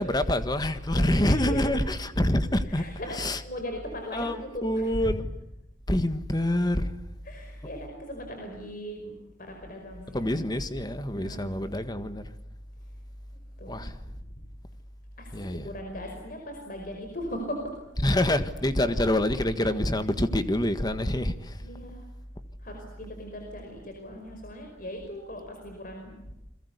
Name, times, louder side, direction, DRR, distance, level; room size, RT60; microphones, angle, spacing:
voice 1, 0.0-2.8 3.2-3.4 4.1-4.4 4.6-5.3 5.9-7.0 10.1-12.3 13.7-14.0 15.3-15.7 18.0-21.6, left 1 dB, 20° left, 1.6 m, -26 dB
voice 2, 0.9-1.8 2.7-5.2 7.2-10.3 11.1-11.9 13.3-13.8 15.2-17.8 18.8-18.9 21.6-22.0 22.6-26.3, equal, 45° left, 5.2 m, -37 dB
29.0 x 22.5 x 8.3 m
head